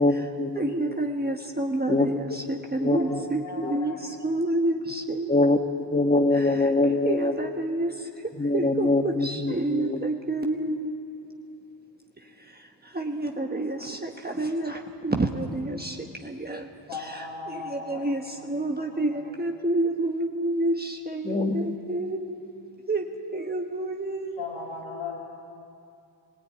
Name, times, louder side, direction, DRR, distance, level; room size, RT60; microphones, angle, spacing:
voice 1, 0.0-1.1 1.9-2.4 2.8-3.2 3.6-3.8 5.3-5.6 5.9-7.4 8.4-10.0 21.2-21.7, left 2 dB, 15° left, 6 dB, 1.4 m, -24 dB
voice 2, 0.5-5.3 6.3-6.7 7.0-11.0 12.2-22.2 22.9-24.4, right 2 dB, 20° right, 2 dB, 1.3 m, -29 dB
voice 3, 2.9-4.0 16.9-18.1 18.3-18.5 18.8-19.3 24.4-25.2, left 4 dB, 80° left, -2 dB, 2.6 m, -38 dB
22.5 x 16.5 x 9.2 m, 2.6 s
cardioid pair, 70°, 47 cm